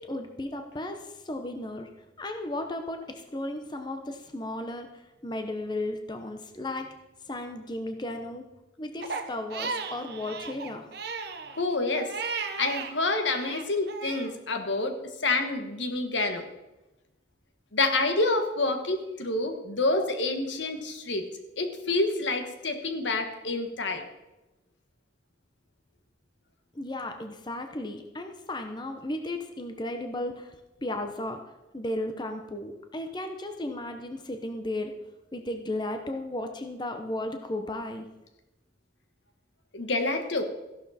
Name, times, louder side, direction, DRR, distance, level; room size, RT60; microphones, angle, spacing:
voice 1, 0.0-1.9 2.2-6.9 7.2-8.4 8.8-10.9 26.7-30.6 30.8-34.9 35.3-38.1, left 1 dB, 25° left, 5 dB, 0.9 m, -35 dB
Crying sobbing, 9.0-12.9 13.3-14.3, right 4 dB, 60° right, 1.1 m, -35 dB
voice 2, 11.6-12.1 12.6-16.4 17.7-21.2 21.6-24.1 39.7-40.4, left 2 dB, 80° left, 6 dB, 1.6 m, -28 dB
14.5 x 11.5 x 4.3 m, 1.0 s
head